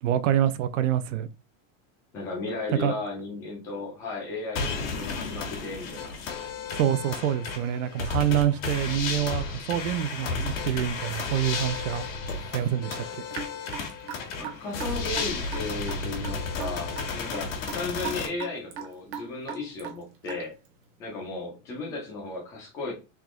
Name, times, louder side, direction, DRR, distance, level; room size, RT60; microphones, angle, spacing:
voice 1, 0.0-1.3 2.8-2.9 6.7-12.0 12.5-13.2, right 10 dB, 70° right, 0.6 m, -26 dB
voice 2, 2.1-6.1 14.3-20.5 21.0-22.9, left 3 dB, 10° left, 0.3 m, -35 dB
sound 1, 4.6-18.3, left 4 dB, 90° left, 1.4 m, -33 dB
Raindrop / Drip, 13.3-20.7, right 7 dB, 40° right, 0.8 m, -39 dB
3.6 x 2.8 x 3.6 m
supercardioid pair, 180°, 39 cm